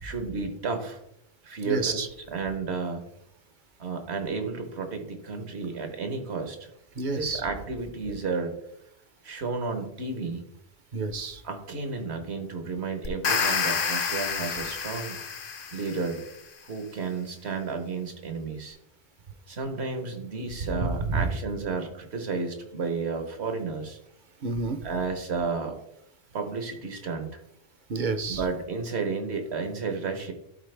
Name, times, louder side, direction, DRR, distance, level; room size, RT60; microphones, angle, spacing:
voice 1, 0.0-1.0 1.4-2.0 2.3-3.0 3.8-6.7 7.1-8.5 9.2-10.5 11.4-15.2 15.7-16.2 16.6-18.8 19.5-24.0 24.8-25.8 26.3-27.4 28.3-30.3, right 4 dB, 70° right, 6 dB, 1.4 m, -32 dB
voice 2, 1.6-2.1 7.0-7.4 10.9-11.4 20.6-21.2 24.4-24.8 27.9-28.4, right 3 dB, 50° right, 9 dB, 0.8 m, -29 dB
sound 1, 13.0-16.2, left 6 dB, 55° left, 0.8 m, -29 dB
12.0 x 4.3 x 3.3 m, 0.78 s
omnidirectional pair, 1.1 m